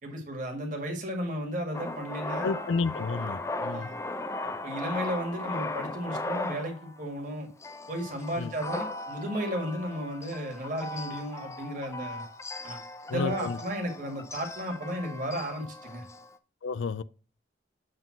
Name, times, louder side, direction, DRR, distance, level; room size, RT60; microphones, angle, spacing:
voice 1, 0.0-2.5 3.7-4.0 4.6-7.5 7.9-12.2 12.6-12.8 13.1-16.0, equal, 45° right, 1.9 m, -34 dB
Male speech man speaking, 1.7-7.2 7.6-16.4, left 2 dB, 15° left, 0.4 m, -37 dB
voice 2, 2.4-3.9 8.4-8.5 13.1-13.6 16.6-17.0, left 4 dB, 90° left, 0.4 m, -31 dB
7.9 x 3.7 x 5.8 m
head